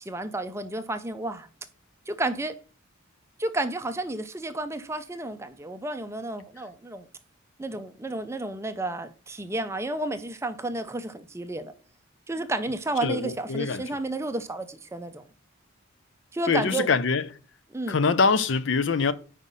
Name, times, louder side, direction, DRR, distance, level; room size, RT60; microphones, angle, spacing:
voice 1, 0.0-1.5 2.1-2.5 3.4-7.1 7.6-11.7 12.3-15.3 16.3-16.9 17.7-18.0, right 2 dB, 15° right, 0.5 m, -31 dB
voice 2, 13.0-13.8 16.5-17.2 17.9-19.1, left 5 dB, 55° left, 0.5 m, -24 dB
5.6 x 5.0 x 5.4 m
head